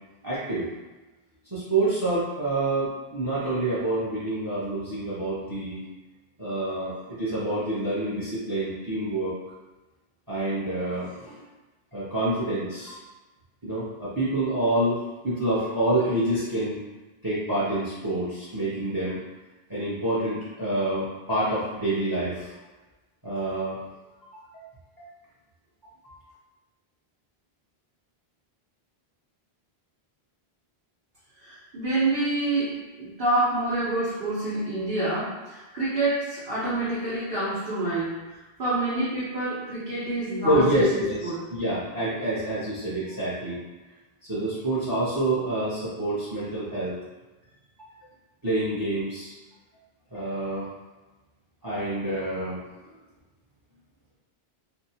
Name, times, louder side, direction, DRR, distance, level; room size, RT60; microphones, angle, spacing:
voice 1, 0.2-0.7 1.5-5.8 6.4-9.3 10.3-11.4 11.9-13.0 13.6-15.0 15.2-16.8 17.2-19.2 19.7-22.5 23.2-23.8 24.3-24.6 25.0-25.1 26.0-26.1 40.4-41.2 41.5-43.6 44.3-47.0 47.8-47.9 48.4-49.3 50.1-50.7 51.6-52.6, right 1 dB, 25° right, -9 dB, 0.7 m, -27 dB
voice 2, 31.4-41.5, right 2 dB, 60° right, -12 dB, 1.1 m, -27 dB
2.7 x 2.2 x 2.7 m, 1.1 s
omnidirectional pair, 1.1 m